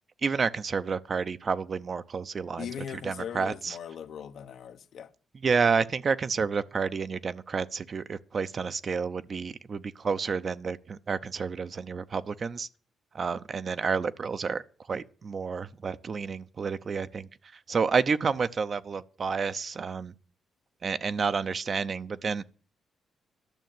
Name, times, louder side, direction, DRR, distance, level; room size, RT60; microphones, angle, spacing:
voice 1, 0.2-2.7 3.0-3.8 5.4-12.7 13.1-14.6 14.9-20.1 20.8-22.4, right 5 dB, 45° right, 0.7 m, -30 dB
voice 2, 2.6-5.1, left 8 dB, 70° left, 1.0 m, -39 dB
12.0 x 6.4 x 9.4 m
cardioid pair, 85°, 0 cm